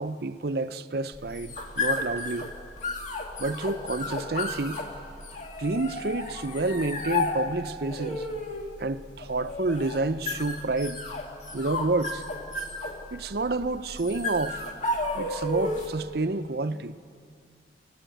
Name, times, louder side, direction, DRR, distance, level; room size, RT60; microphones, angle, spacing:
voice 1, 0.0-2.5 3.4-4.8 5.6-8.3 8.8-11.0 11.5-12.2 13.1-14.6 15.1-16.9, right 3 dB, 55° right, 0.7 m, -29 dB
sound 1, 1.1-16.1, left 2 dB, 40° left, 2.1 m, -33 dB
28.5 x 15.5 x 9.2 m
head